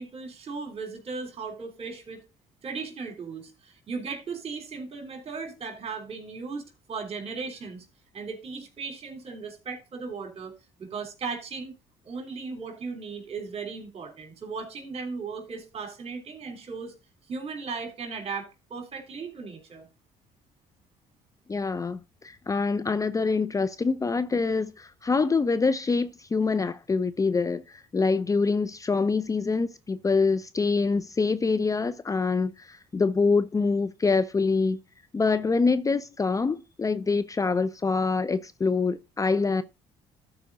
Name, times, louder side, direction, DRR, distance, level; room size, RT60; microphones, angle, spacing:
voice 1, 0.0-2.2 2.6-7.9 8.1-10.5 10.8-11.8 12.0-16.9 17.3-19.9, right 4 dB, 45° right, 3.4 m, -37 dB
voice 2, 21.5-34.8 35.1-39.6, left 4 dB, 25° left, 0.6 m, -25 dB
13.0 x 4.9 x 4.0 m
supercardioid pair, 65°, 14 cm